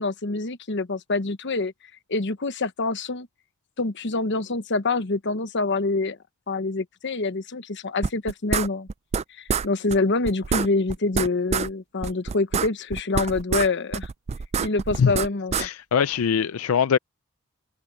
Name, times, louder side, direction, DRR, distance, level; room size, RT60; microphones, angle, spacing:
voice 1, 0.0-1.7 2.1-3.3 3.8-6.2 6.5-8.9 9.3-14.1 14.6-15.7, left 3 dB, 60° left, 1.1 m, -26 dB
sound 1, 8.0-9.2 9.5-9.7 9.9-10.0 10.2-11.7 12.0-13.7 13.9-15.7, right 6 dB, 30° right, 0.3 m, -26 dB
voice 2, 15.5-17.0, left 7 dB, 85° left, 0.4 m, -22 dB
open air
head